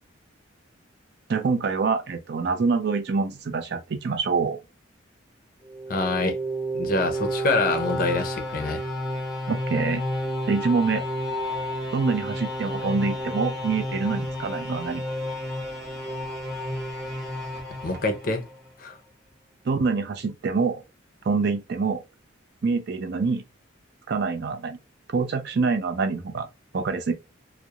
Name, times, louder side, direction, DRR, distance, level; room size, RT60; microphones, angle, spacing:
voice 1, 1.3-4.6 9.5-10.0 10.5-11.0 11.9-15.0 19.6-20.8 21.2-22.0 22.6-23.4 24.1-24.8 25.1-26.5 26.7-27.1, right 4 dB, 55° right, 0.4 m, -25 dB
sound 1, 5.6-18.7, equal, ahead, 0.9 m, -31 dB
voice 2, 5.9-6.4 6.7-8.8 17.8-18.4 18.8-19.0, left 3 dB, 45° left, 0.5 m, -25 dB
2.3 x 2.0 x 2.8 m
head